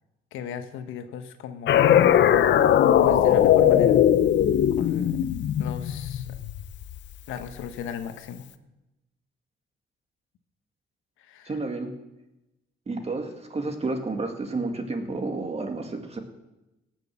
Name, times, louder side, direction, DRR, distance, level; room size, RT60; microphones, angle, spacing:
voice 1, 0.3-1.9 2.5-2.6 3.0-4.0 4.8-5.2 5.6-6.3 7.3-8.5 11.2-11.5, left 8 dB, 90° left, 9 dB, 1.1 m, -37 dB
sound 1, 1.7-7.0, left 10 dB, 65° left, 0.7 m, -19 dB
voice 2, 11.5-11.9 12.9-16.2, right 3 dB, 30° right, 4 dB, 2.1 m, -31 dB
18.0 x 6.5 x 7.3 m, 0.99 s
cardioid pair, 90°, 20 cm